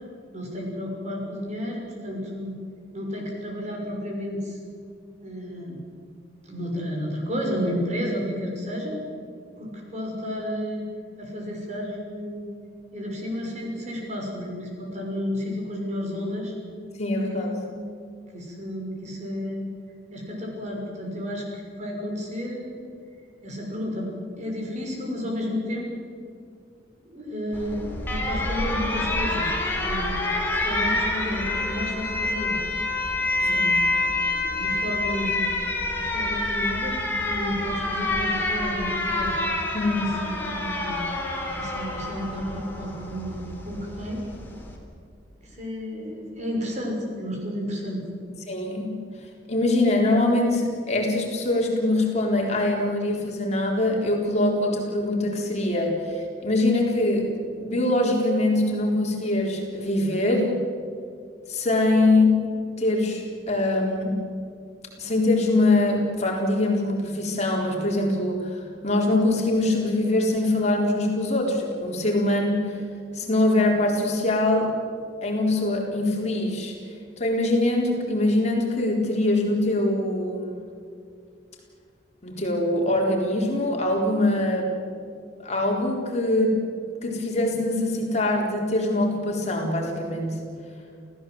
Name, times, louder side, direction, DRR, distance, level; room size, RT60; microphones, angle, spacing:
voice 1, 0.3-2.5 2.9-4.6 5.2-5.8 6.5-9.0 9.6-10.9 11.2-12.4 12.9-16.5 17.2-17.8 18.3-19.6 20.1-21.4 21.8-22.8 23.4-24.1 24.4-25.9 27.1-29.5 29.8-30.2 30.6-32.6 33.4-35.4 36.0-39.4 40.0-41.1 41.5-44.2 45.4-48.0, equal, 40° right, 0 dB, 6.2 m, -32 dB
voice 2, 17.0-17.5 33.5-33.6 39.7-40.2 48.5-49.0 49.5-57.3 57.6-60.5 61.5-62.4 62.8-64.2 65.0-72.8 73.1-74.7 75.2-76.7 77.2-80.6 82.2-84.7 85.4-86.6 87.0-90.3, left 2 dB, 40° left, 0 dB, 4.1 m, -23 dB
Alarm, 27.5-44.8, left 2 dB, 10° left, 3.8 m, -27 dB
28.5 x 16.0 x 8.0 m, 2.3 s
head